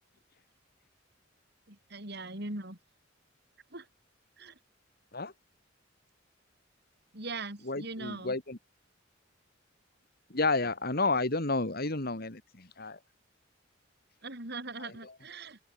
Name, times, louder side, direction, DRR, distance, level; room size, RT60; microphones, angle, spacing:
voice 1, 1.7-2.8 3.7-3.9 4.4-4.6 7.1-8.4 14.2-15.6, right 2 dB, 55° right, 5.9 m, -40 dB
voice 2, 7.7-8.6 10.3-13.0, left 3 dB, 50° left, 2.7 m, -31 dB
open air
head